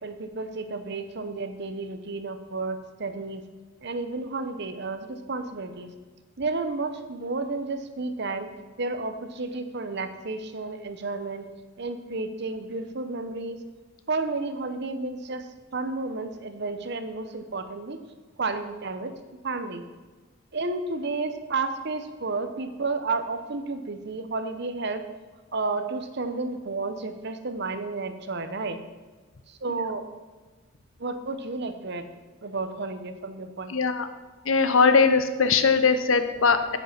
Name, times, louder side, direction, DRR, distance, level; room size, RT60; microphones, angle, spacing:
voice 1, 0.0-3.4 3.8-5.9 6.4-8.5 8.8-11.5 11.8-13.6 14.1-15.4 15.7-18.0 18.4-19.1 19.4-19.8 20.5-25.0 25.5-28.8 29.6-30.0 31.0-32.1 32.4-33.7, right 3 dB, 55° right, 8 dB, 1.0 m, -31 dB
voice 2, 33.7-34.1 34.5-36.8, left 5 dB, 85° left, 10 dB, 0.9 m, -21 dB
10.0 x 8.4 x 5.9 m, 1.4 s
head